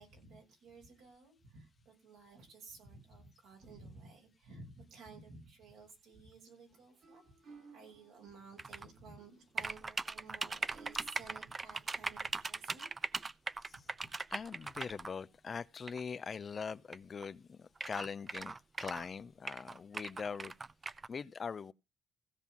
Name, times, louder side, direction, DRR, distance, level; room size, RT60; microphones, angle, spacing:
voice 1, 0.0-7.2 7.7-12.9 14.0-14.1, right 3 dB, 85° right, 6.5 m, -55 dB
sound 1, 6.7-12.2, right 4 dB, 70° right, 4.6 m, -61 dB
sound 2, 8.6-8.9 9.6-15.1 15.9-16.0 16.9-17.0 17.2-17.3 17.8-19.1 19.5-21.1, right 3 dB, 30° right, 0.5 m, -39 dB
voice 2, 14.3-20.5 21.1-21.7, left 6 dB, 40° left, 0.5 m, -42 dB
16.0 x 5.5 x 6.0 m
cardioid pair, 90°, 0 cm